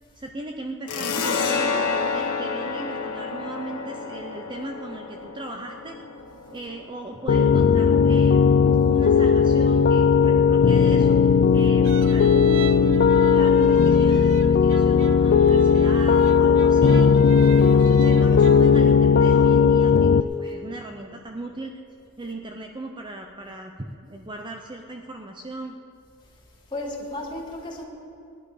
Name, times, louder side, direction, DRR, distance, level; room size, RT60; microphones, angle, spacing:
voice 1, 0.2-1.9 2.1-6.0 6.5-8.5 8.8-11.2 11.5-13.0 13.3-17.1 17.7-20.1 20.4-21.8 22.2-25.8, right 1 dB, 20° right, 3 dB, 0.7 m, -37 dB
sound 1, 0.9-8.1, left 4 dB, 90° left, 1.3 m, -29 dB
Piano, 7.3-20.2, left 6 dB, 50° left, 0.3 m, -17 dB
sound 2, 11.8-18.6, right 4 dB, 60° right, 0.5 m, -35 dB
voice 2, 17.5-17.9 26.2-27.8, left 1 dB, 20° left, -3 dB, 2.8 m, -37 dB
20.0 x 11.0 x 5.0 m, 2.5 s
head